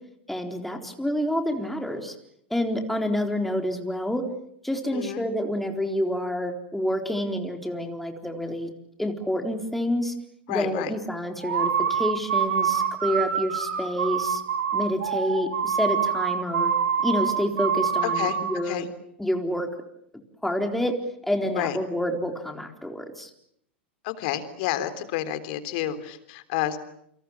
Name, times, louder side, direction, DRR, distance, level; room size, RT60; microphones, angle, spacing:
voice 1, 0.3-2.1 2.5-4.2 4.6-8.7 9.0-10.1 10.5-14.4 14.7-16.7 17.0-18.9 19.2-19.7 20.4-20.9 21.2-23.3, equal, 5° left, 4 dB, 4.0 m, -28 dB
voice 2, 4.9-5.2 10.5-10.9 18.0-18.4 18.6-18.9 21.6-21.8 24.0-26.8, left 12 dB, 55° left, 11 dB, 3.6 m, -29 dB
sound 1, 11.4-18.6, right 7 dB, 75° right, 5.7 m, -25 dB
29.5 x 26.5 x 7.3 m, 0.71 s
hypercardioid pair, 95°, 6 cm